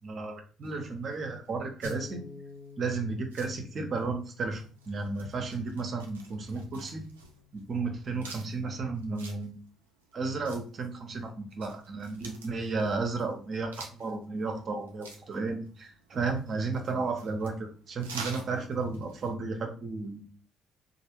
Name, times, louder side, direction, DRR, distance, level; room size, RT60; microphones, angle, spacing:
voice 1, 0.0-2.2 2.8-7.0 7.5-9.6 10.1-20.4, right 4 dB, 50° right, 4 dB, 0.8 m, -33 dB
sound 1, 0.6-19.3, right 4 dB, 90° right, 0.4 m, -50 dB
Bass guitar, 1.8-8.1, left 4 dB, 25° left, 0.6 m, -50 dB
3.1 x 2.6 x 3.0 m, 0.40 s
hypercardioid pair, 45°, 0 cm